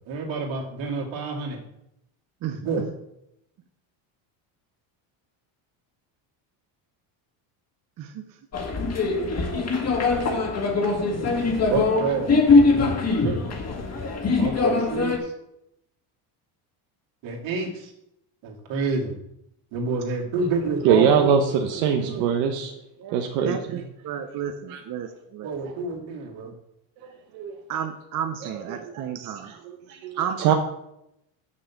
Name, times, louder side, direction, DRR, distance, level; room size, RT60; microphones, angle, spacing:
voice 1, 0.0-1.6 2.5-2.8 11.7-12.8 13.2-13.4 14.3-15.3 17.2-17.9 18.4-19.1 19.7-21.4 21.7-22.3 25.4-26.5, right 4 dB, 65° right, -1 dB, 2.6 m, -29 dB
voice 2, 2.4-2.9 8.0-8.2 9.8-9.9 23.0-25.5 27.7-29.5 30.2-30.5, right 8 dB, 40° right, 5 dB, 0.8 m, -32 dB
sound 1, 8.5-15.2, left 3 dB, 30° left, 1.6 m, -22 dB
voice 3, 20.8-22.7 23.1-23.8 24.7-24.8 27.3-27.5 28.7-29.0 29.5-30.5, right 7 dB, 85° right, 4 dB, 1.0 m, -23 dB
6.6 x 5.4 x 7.2 m, 0.82 s
cardioid pair, 125°, 49 cm